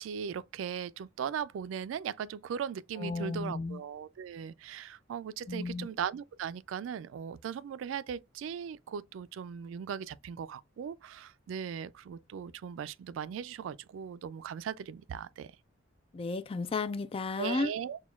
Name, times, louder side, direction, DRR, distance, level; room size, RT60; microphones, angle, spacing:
voice 1, 0.0-15.5 17.4-18.0, right 8 dB, 80° right, 0.3 m, -38 dB
voice 2, 3.0-3.8 5.5-5.9 16.1-17.7, left 3 dB, 30° left, 0.3 m, -33 dB
6.0 x 2.2 x 2.3 m
head